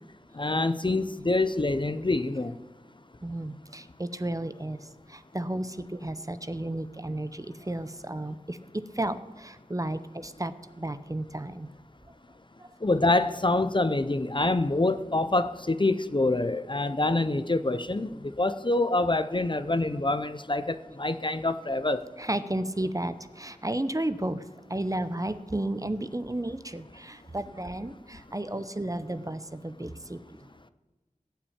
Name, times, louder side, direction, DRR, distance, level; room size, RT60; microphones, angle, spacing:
voice 1, 0.3-2.5 12.8-22.0, left 2 dB, 35° left, 12 dB, 0.6 m, -26 dB
voice 2, 3.2-11.7 12.6-12.7 22.2-24.4 24.7-30.4, right 1 dB, 25° right, 12 dB, 0.7 m, -33 dB
16.5 x 5.8 x 8.6 m, 1.2 s
wide cardioid pair, 55°, 14 cm